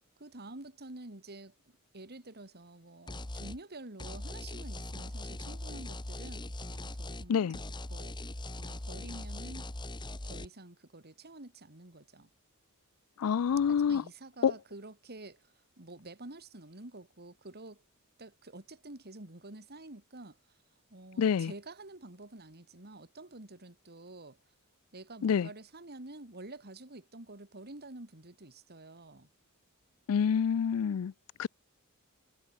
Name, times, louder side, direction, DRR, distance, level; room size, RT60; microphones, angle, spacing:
voice 1, 0.2-1.5 1.9-8.2 8.6-9.7 10.2-12.3 13.7-17.8 18.2-20.4 20.9-24.4 24.9-29.3, right 2 dB, 45° right, 3.0 m, -49 dB
sound 1, 3.1-3.6 4.0-7.3 7.5-10.5, left 1 dB, 20° left, 1.4 m, -41 dB
voice 2, 13.2-14.0 14.4-14.5 21.2-21.5 25.2-25.5 30.1-31.1 31.4-31.5, left 7 dB, 70° left, 0.4 m, -27 dB
head